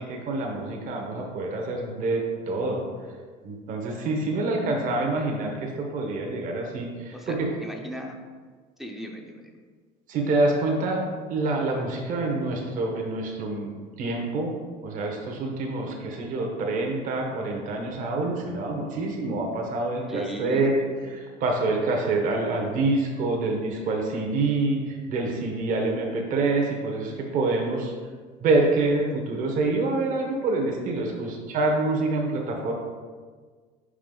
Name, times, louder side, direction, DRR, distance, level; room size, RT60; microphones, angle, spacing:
voice 1, 0.0-2.8 3.4-7.5 10.1-11.0 11.3-13.7 14.0-14.5 14.8-20.7 21.1-27.9 28.4-32.7, right 2 dB, 50° right, 1 dB, 1.0 m, -26 dB
voice 2, 7.1-8.2 8.8-9.5 20.1-20.9, equal, ahead, 1 dB, 0.5 m, -37 dB
5.2 x 4.9 x 3.8 m, 1.5 s
cardioid pair, 135°, 17 cm